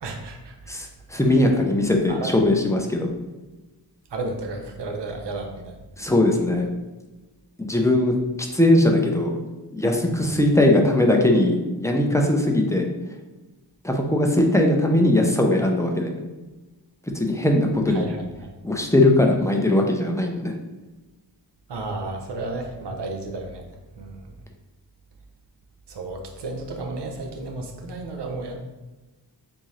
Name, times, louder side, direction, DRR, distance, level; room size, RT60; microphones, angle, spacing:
voice 1, 0.0-0.5 2.1-2.3 4.1-5.8 10.2-10.3 17.9-18.2 18.4-18.5 21.7-23.6 24.0-24.3 25.9-28.6, right 2 dB, 70° right, 3 dB, 0.7 m, -32 dB
voice 2, 0.7-3.1 6.0-6.7 7.6-9.4 9.7-12.9 13.8-16.1 17.1-18.1 18.6-20.5, left 1 dB, 5° left, 1 dB, 0.4 m, -20 dB
3.6 x 2.7 x 3.1 m, 1.1 s
wide cardioid pair, 90°, 44 cm